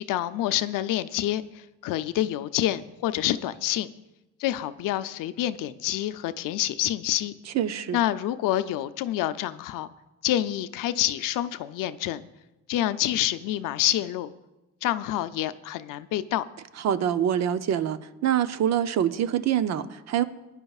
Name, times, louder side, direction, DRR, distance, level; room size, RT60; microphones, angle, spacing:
voice 1, 0.0-3.9 4.4-7.3 7.9-9.9 10.2-12.2 12.7-14.3 14.8-16.4, left 13 dB, 80° left, 12 dB, 0.6 m, -27 dB
voice 2, 7.5-8.0 16.8-20.2, right 10 dB, 55° right, 11 dB, 0.6 m, -25 dB
20.0 x 10.0 x 2.4 m, 1.0 s
cardioid pair, 125°, 32 cm